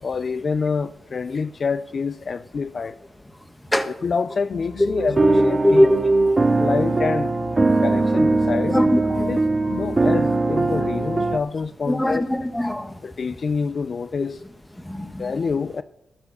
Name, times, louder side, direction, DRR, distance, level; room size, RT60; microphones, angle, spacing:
voice 1, 0.0-3.0 3.9-5.9 6.6-7.4 7.8-8.8 9.3-9.4 9.8-12.5 13.0-14.4 15.2-15.8, left 5 dB, 55° left, 0.4 m, -26 dB
sound 1, 4.5-11.4, left 4 dB, 80° left, 1.7 m, -36 dB
sound 2, 5.0-11.4, right 3 dB, 35° right, 0.5 m, -20 dB
voice 2, 5.6-6.0 8.7-9.3 11.9-12.9 14.9-15.3, left 1 dB, 10° left, 1.5 m, -21 dB
13.0 x 7.4 x 6.6 m
supercardioid pair, 50°, 0 cm